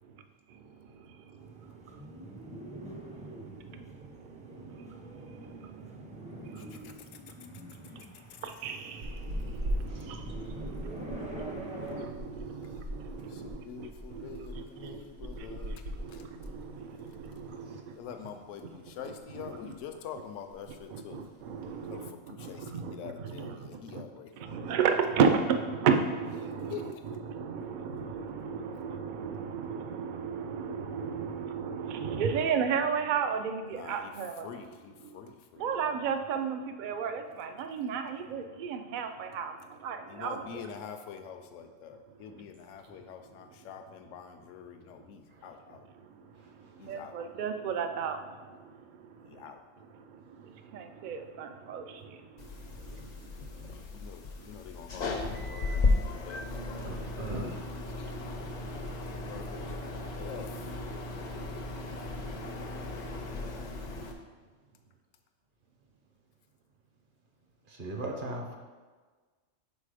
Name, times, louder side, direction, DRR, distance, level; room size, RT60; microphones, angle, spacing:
voice 1, 0.0-7.0 7.8-8.1 8.4-15.0 15.3-18.2 19.0-19.7 20.9-24.1 24.4-34.6 35.0-35.3 35.6-40.7 42.2-42.3 42.9-43.0 43.4-43.5 45.0-45.1 45.4-53.9 54.4-54.6 55.5-55.7 56.1-56.2 56.7-56.9, right 6 dB, 70° right, 7 dB, 0.4 m, -35 dB
sound 1, 1.4-12.0, equal, 10° right, 0.4 m, -45 dB
voice 2, 6.6-6.9 8.3-8.4 12.6-12.7 13.2-16.3 17.9-21.2 21.9-24.3 26.7-27.0 33.7-34.1 34.4-35.7 40.1-45.9 46.8-47.2 49.3-49.6 53.7-56.9 57.9-58.6 59.0-60.8, left 8 dB, 80° left, 7 dB, 0.9 m, -46 dB
sound 2, 9.0-17.5 17.8-18.0 18.4-19.2 19.6-19.9 20.2-20.3 20.5-20.9 21.5-22.0, equal, 85° right, 1.3 m, -40 dB
voice 3, 9.9-10.2 17.7-17.8 45.3-45.5 46.4-46.9 56.8-57.7 62.5-62.7 67.7-68.6, right 2 dB, 50° right, 1 dB, 0.8 m, -40 dB
sound 3, 52.4-64.1, left 3 dB, 50° left, 0.5 m, -35 dB
5.3 x 4.0 x 4.9 m, 1.4 s
omnidirectional pair, 1.3 m